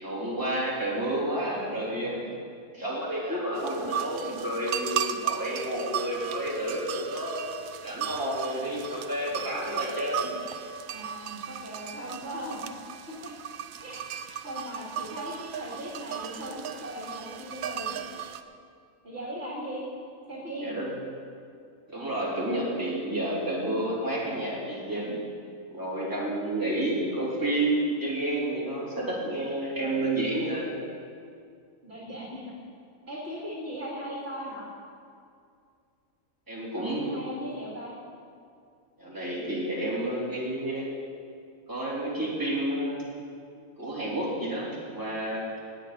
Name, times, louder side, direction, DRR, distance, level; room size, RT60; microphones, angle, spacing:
voice 1, 0.0-2.3 2.7-7.5 7.8-10.4 20.6-21.0 21.9-25.2 25.7-30.7 36.5-37.2 39.0-40.9 41.7-43.0 43.8-45.4, right 1 dB, 15° right, -7 dB, 3.7 m, -30 dB
sound 1, 3.5-18.4, right 9 dB, 80° right, 1.1 m, -36 dB
voice 2, 10.9-12.6 13.1-13.3 13.8-18.0 19.0-19.8 20.3-20.8 31.8-32.5 33.1-34.7 36.8-37.9, equal, 50° right, -5 dB, 2.6 m, -38 dB
17.0 x 6.0 x 9.6 m, 2.3 s
omnidirectional pair, 1.4 m